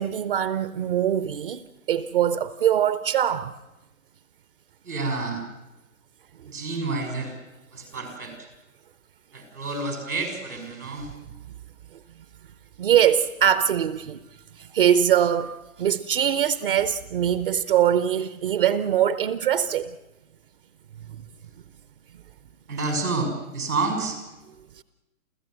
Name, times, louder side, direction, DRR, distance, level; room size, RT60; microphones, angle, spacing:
voice 1, 0.0-1.6 1.9-3.5 12.8-14.2 14.6-19.9, right 9 dB, 40° right, 0.8 m, -22 dB
voice 2, 4.8-5.4 6.4-7.4 7.7-8.5 9.3-11.1 22.7-24.2, right 3 dB, 80° right, 6.3 m, -29 dB
29.0 x 15.5 x 7.7 m
hypercardioid pair, 140°, 43 cm